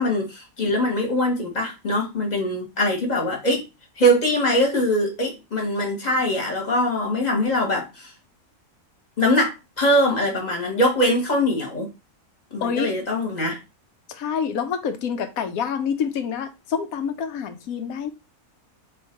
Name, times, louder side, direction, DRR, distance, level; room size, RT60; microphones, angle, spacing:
voice 1, 0.0-3.6 4.0-8.1 9.2-11.9 12.5-13.6, equal, 30° left, 1.3 m, -22 dB
voice 2, 12.6-12.9 14.1-18.1, left 7 dB, 90° left, 1.2 m, -27 dB
3.2 x 3.1 x 4.4 m
omnidirectional pair, 1.4 m